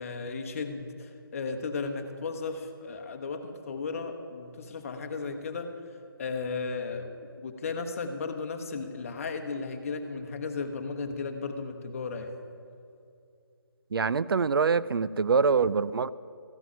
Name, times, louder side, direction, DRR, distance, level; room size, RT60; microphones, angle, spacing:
voice 1, 0.0-5.7 6.2-12.4, left 4 dB, 35° left, 1.1 m, -35 dB
voice 2, 13.9-16.1, right 5 dB, 75° right, 0.4 m, -24 dB
14.0 x 6.1 x 9.1 m
figure-of-eight pair, 160°, 12 cm